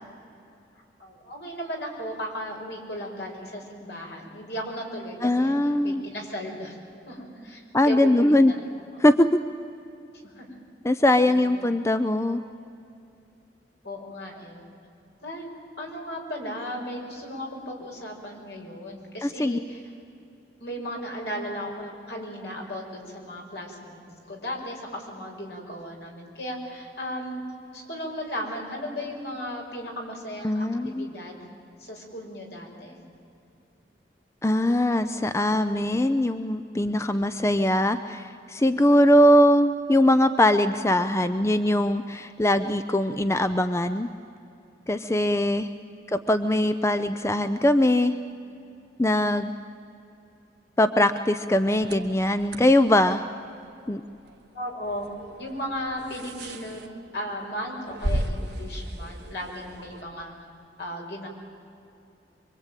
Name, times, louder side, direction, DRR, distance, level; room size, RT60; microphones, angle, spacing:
voice 1, 1.0-6.8 7.1-8.6 10.2-10.6 11.3-11.6 13.8-14.6 15.2-15.5 15.8-19.8 20.6-24.0 24.3-27.4 27.7-31.4 31.8-33.0 45.7-45.9 54.5-55.1 55.4-56.8 57.1-60.3 60.8-61.3, equal, 70° left, 0 dB, 5.5 m, -36 dB
voice 2, 5.2-6.0 7.7-8.5 9.0-9.4 10.8-12.4 19.2-19.6 30.4-31.1 34.4-44.1 44.9-45.7 46.1-48.1 49.0-49.5 50.8-53.3 53.9-54.0, left 1 dB, 15° left, 10 dB, 0.5 m, -21 dB
sound 1, 51.7-60.0, right 1 dB, 70° right, 1.4 m, -36 dB
25.0 x 23.5 x 9.1 m, 2.7 s
head